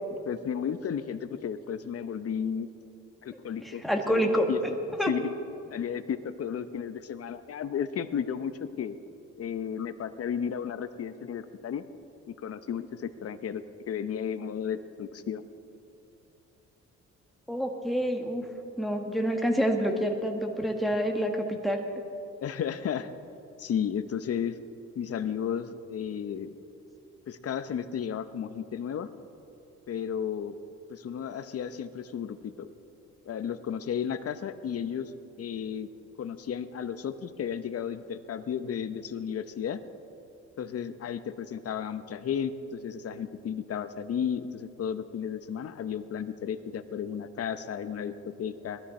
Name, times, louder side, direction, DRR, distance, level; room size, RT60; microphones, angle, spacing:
voice 1, 0.3-2.7 3.2-4.6 5.1-5.3 5.7-8.5 8.8-9.0 9.4-11.8 12.4-15.4 22.4-23.1 23.6-24.6 25.0-26.5 27.3-29.1 29.9-30.6 30.9-32.7 33.3-35.1 35.4-35.9 36.2-39.8 40.6-48.8, left 8 dB, 50° left, 11 dB, 0.9 m, -33 dB
voice 2, 3.6-4.7 5.0-5.1 17.5-18.5 18.8-21.8, equal, ahead, 2 dB, 1.7 m, -27 dB
19.5 x 12.5 x 4.3 m, 2.8 s
cardioid pair, 90°, 30 cm